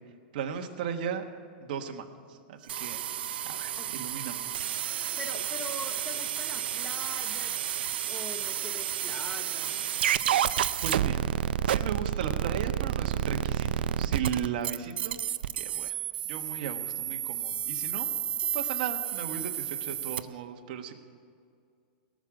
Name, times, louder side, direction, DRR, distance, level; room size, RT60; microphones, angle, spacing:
voice 1, 0.3-1.2 1.6-3.0 3.4-4.5 10.8-11.2 11.7-15.2 15.5-15.9 16.2-18.1 18.5-20.9, right 7 dB, 55° right, 4 dB, 1.4 m, -36 dB
sound 1, 2.7-20.2, right 10 dB, 80° right, 0.4 m, -31 dB
voice 2, 5.1-7.6 8.1-9.9, left 3 dB, 10° left, 5 dB, 0.7 m, -42 dB
18.5 x 6.4 x 9.0 m, 2.3 s
supercardioid pair, 155°, 5 cm